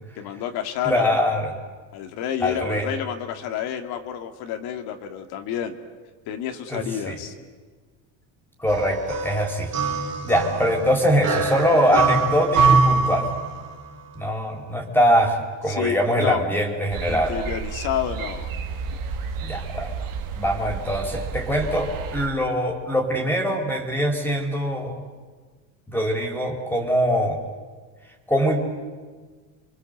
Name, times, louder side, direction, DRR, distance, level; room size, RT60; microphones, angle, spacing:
voice 1, 0.2-1.4 1.9-5.8 6.3-7.3 15.7-16.4 17.1-18.5, left 9 dB, 65° left, 5 dB, 2.5 m, -29 dB
voice 2, 0.8-1.5 2.4-2.9 6.7-7.2 8.6-9.7 10.2-13.3 14.1-17.3 19.4-19.9 20.3-25.0 25.9-27.4 28.3-28.6, equal, 5° left, 3 dB, 4.1 m, -23 dB
sound 1, 8.7-13.9, right 4 dB, 40° right, 3.1 m, -23 dB
sound 2, 16.9-22.3, right 5 dB, 55° right, 2.9 m, -32 dB
30.0 x 24.0 x 8.1 m, 1.5 s
cardioid pair, 125°, 40 cm